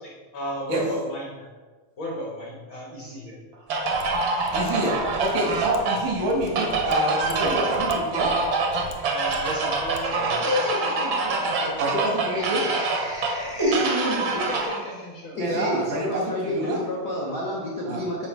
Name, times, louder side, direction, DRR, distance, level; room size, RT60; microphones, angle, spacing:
voice 1, 0.0-1.5 2.0-3.4 5.7-5.9 9.1-11.0 12.5-12.7 13.0-13.1 14.1-16.2 16.6-16.7, equal, 55° left, -3 dB, 1.5 m, -35 dB
sound 1, 3.7-14.8, right 3 dB, 65° right, 1.2 m, -26 dB
Mechanisms, 3.9-10.0 10.3-10.4, left 4 dB, 85° left, 2.3 m, -42 dB
voice 2, 4.5-8.3 11.8-12.7 15.4-16.8 17.9-18.0, right 1 dB, 90° right, -1 dB, 3.5 m, -27 dB
Laughter, 10.4-14.7, equal, 25° right, 0.6 m, -29 dB
voice 3, 15.3-18.3, equal, 70° left, -4 dB, 0.9 m, -29 dB
8.6 x 4.8 x 4.6 m, 1.4 s
omnidirectional pair, 3.6 m